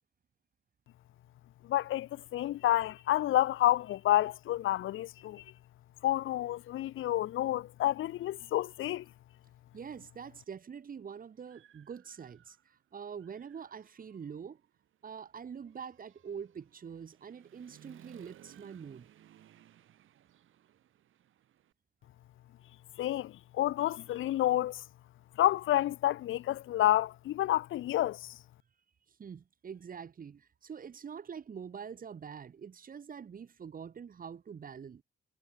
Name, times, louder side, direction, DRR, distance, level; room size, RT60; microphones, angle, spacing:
voice 1, 1.7-5.4 6.0-9.0 23.0-24.8 25.4-28.3, left 14 dB, 75° left, 0.7 m, -29 dB
voice 2, 9.7-14.6 15.0-19.1 29.2-35.0, right 7 dB, 45° right, 1.6 m, -45 dB
Human voice / Motorcycle, 10.4-10.5 11.0-12.8 13.1-21.7, right 11 dB, 75° right, 6.8 m, -61 dB
cardioid pair, 100°, 21 cm